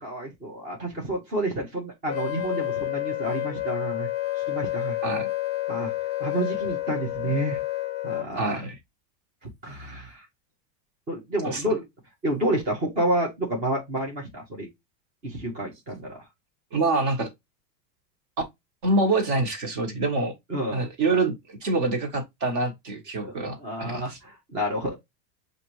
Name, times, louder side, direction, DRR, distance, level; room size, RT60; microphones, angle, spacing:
voice 1, 0.0-4.1 4.5-5.0 5.7-5.9 6.2-7.6 8.0-8.6 9.4-10.3 11.1-11.8 12.2-14.7 15.2-16.2 20.5-20.9 23.2-24.9, right 1 dB, 15° right, 0.6 m, -29 dB
Wind instrument woodwind instrument, 2.1-8.3, left 16 dB, 40° left, 0.6 m, -29 dB
voice 2, 8.4-8.7 11.4-11.6 16.7-17.3 18.8-20.3 20.7-24.2, right 2 dB, 40° right, 1.3 m, -26 dB
6.5 x 2.6 x 2.9 m
supercardioid pair, 170°, 50 cm